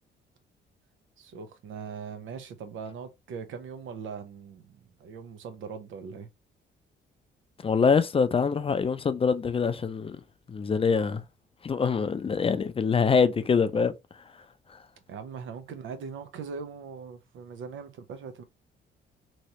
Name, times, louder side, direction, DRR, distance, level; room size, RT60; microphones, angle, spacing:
voice 1, 1.2-6.3 15.1-18.4, right 6 dB, 75° right, 0.8 m, -40 dB
voice 2, 7.6-10.2 10.5-11.2 11.6-13.9, left 5 dB, 30° left, 0.4 m, -24 dB
3.1 x 2.8 x 2.8 m
cardioid pair, 90°, 20 cm